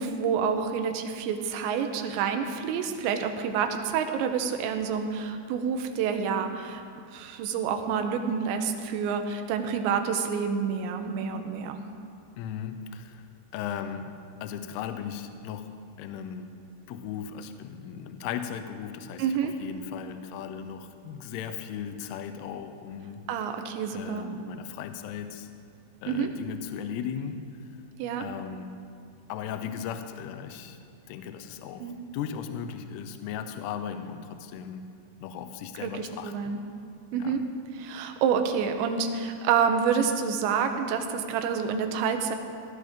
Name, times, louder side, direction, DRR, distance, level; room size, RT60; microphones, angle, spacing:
voice 1, 0.0-6.8 7.1-11.8 19.2-19.5 23.3-24.3 26.1-26.3 28.0-28.2 31.8-32.0 35.8-36.6 37.1-37.4 37.8-42.4, right 6 dB, 75° right, 6 dB, 3.0 m, -28 dB
voice 2, 12.4-13.3 13.5-14.1 14.4-16.5 16.9-23.4 23.9-25.5 26.0-27.5 28.2-28.7 29.3-30.8 31.1-34.8 35.2-36.6 37.2-37.4, left 8 dB, 90° left, 8 dB, 2.3 m, -37 dB
17.0 x 13.0 x 3.7 m, 2.3 s
omnidirectional pair, 5.6 m